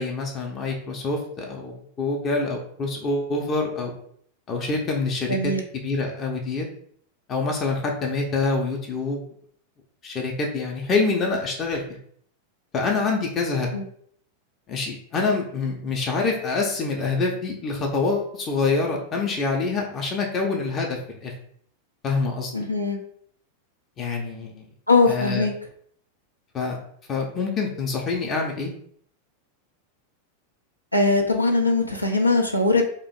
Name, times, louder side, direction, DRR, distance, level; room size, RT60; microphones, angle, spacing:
voice 1, 0.0-3.9 4.5-6.7 7.3-9.2 10.0-12.0 12.7-13.7 14.7-21.3 22.0-22.5 24.0-24.6 25.1-25.5 26.5-26.8 27.1-28.7, left 3 dB, 25° left, 0 dB, 0.6 m, -26 dB
voice 2, 5.3-5.6 13.7-13.8 22.5-23.0 24.9-25.5 30.9-32.9, left 3 dB, 85° left, 2 dB, 0.5 m, -21 dB
2.9 x 2.4 x 4.2 m, 0.63 s
figure-of-eight pair, 90°, 0 cm